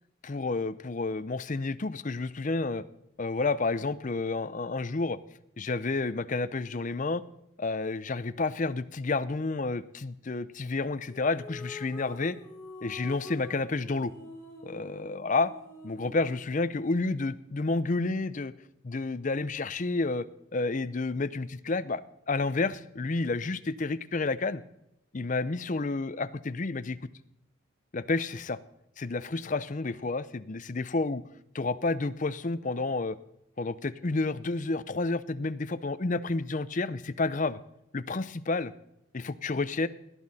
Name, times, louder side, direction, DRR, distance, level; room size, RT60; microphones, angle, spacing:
voice 1, 0.2-2.8 3.2-5.2 5.6-7.2 7.6-12.4 12.8-14.1 14.7-15.5 15.8-18.5 18.8-20.3 20.5-22.0 22.3-24.6 25.1-27.0 27.9-28.6 29.0-31.2 31.5-33.2 33.6-37.6 37.9-38.7 39.1-39.9, left 3 dB, 35° left, 13 dB, 0.6 m, -30 dB
sound 1, 11.1-16.4, left 2 dB, 10° left, 3.4 m, -46 dB
18.0 x 11.0 x 4.2 m, 0.82 s
head